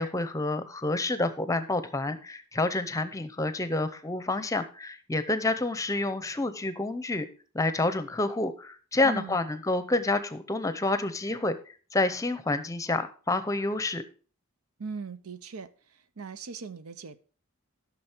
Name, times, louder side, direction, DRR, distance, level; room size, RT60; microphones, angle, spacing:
voice 1, 0.0-7.3 7.5-11.6 11.9-14.0, left 2 dB, 15° left, 0.6 m, -28 dB
voice 2, 9.0-9.4 9.7-9.8 14.8-17.2, right 4 dB, 85° right, 0.7 m, -39 dB
12.5 x 6.1 x 4.4 m
head